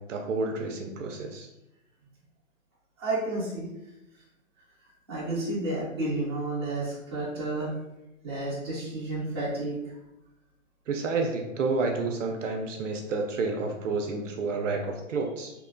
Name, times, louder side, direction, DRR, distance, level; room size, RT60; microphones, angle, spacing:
voice 1, 0.1-1.5 10.9-15.5, right 3 dB, 70° right, 3 dB, 0.5 m, -30 dB
voice 2, 3.0-3.7 5.1-7.7 8.2-10.0, right 2 dB, 20° right, -10 dB, 0.6 m, -31 dB
2.8 x 2.2 x 2.5 m, 0.92 s
hypercardioid pair, 175°, 39 cm